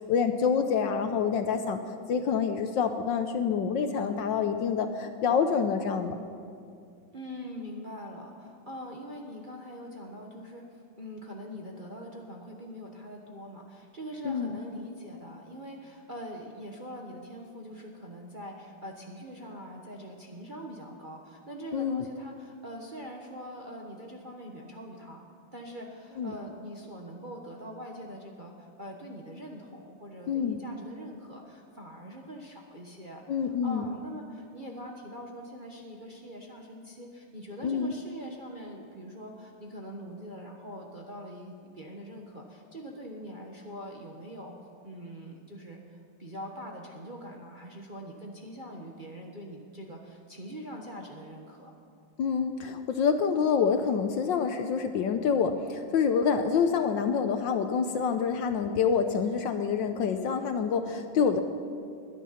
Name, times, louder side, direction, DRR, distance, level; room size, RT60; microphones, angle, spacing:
voice 1, 0.0-1.8 2.1-6.1 14.2-14.6 21.7-22.1 26.2-26.3 30.3-30.6 33.3-33.8 37.6-37.9 52.2-61.4, left 6 dB, 70° left, 7 dB, 1.3 m, -27 dB
voice 2, 7.1-25.2 25.5-44.5 44.8-51.7, equal, 30° right, 0 dB, 1.0 m, -43 dB
21.0 x 10.5 x 5.7 m, 2.4 s
omnidirectional pair, 2.4 m